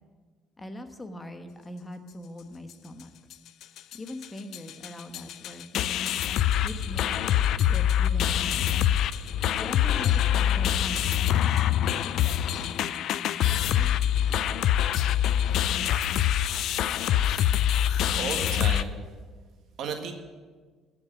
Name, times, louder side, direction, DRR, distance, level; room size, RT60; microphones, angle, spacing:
voice 1, 0.6-3.1 3.9-6.2 6.6-7.2 7.6-8.8 9.6-13.4 13.6-14.0, left 1 dB, 20° left, 7 dB, 1.1 m, -42 dB
sound 1, 3.3-3.4 3.6-4.0 4.2-4.3 4.5-18.8, left 10 dB, 70° left, 0.4 m, -25 dB
voice 2, 18.2-19.0 19.8-20.1, right 6 dB, 65° right, 5 dB, 1.7 m, -33 dB
14.0 x 5.9 x 9.3 m, 1.5 s
cardioid pair, 105°, 0 cm